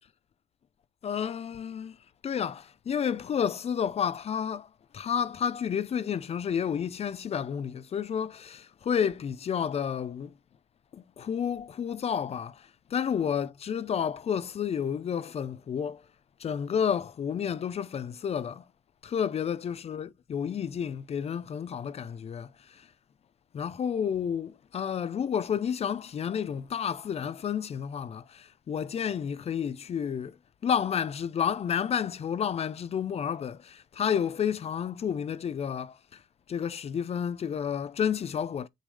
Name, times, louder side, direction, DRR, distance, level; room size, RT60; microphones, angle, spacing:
voice 1, 1.0-2.0 2.2-10.3 10.9-16.0 16.4-18.7 19.0-22.9 23.5-36.2 36.5-38.7, left 8 dB, 40° left, 0.7 m, -31 dB
8.1 x 6.5 x 3.4 m
cardioid pair, 110°, 17 cm